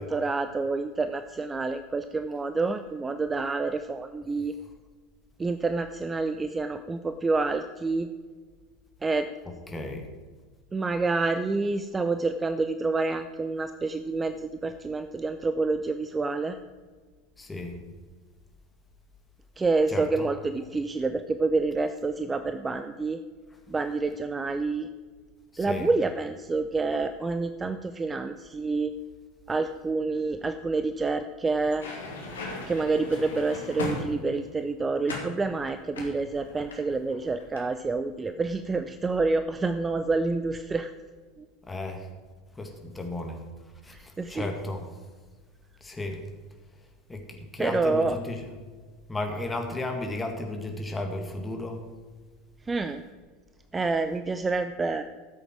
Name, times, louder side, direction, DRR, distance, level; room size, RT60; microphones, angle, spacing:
voice 1, 0.0-4.5 5.4-8.1 9.0-9.3 10.7-16.6 19.6-23.2 23.7-24.9 25.6-28.9 29.5-31.9 32.7-40.9 41.4-41.5 43.9-44.5 47.6-48.2 52.7-53.0 53.7-55.0, right 3 dB, 15° right, 10 dB, 0.6 m, -28 dB
voice 2, 9.7-10.1 17.4-17.8 19.9-20.3 25.5-25.9 41.6-42.1 42.5-43.5 43.8-44.9 45.8-46.2 47.1-48.4 49.1-51.8, left 2 dB, 15° left, 3 dB, 2.0 m, -34 dB
sound 1, 31.6-34.5 35.1-35.4 35.9-37.1 37.4-37.7, left 2 dB, 70° left, 2.4 m, -37 dB
14.0 x 8.0 x 4.6 m, 1.5 s
figure-of-eight pair, 80°, 0 cm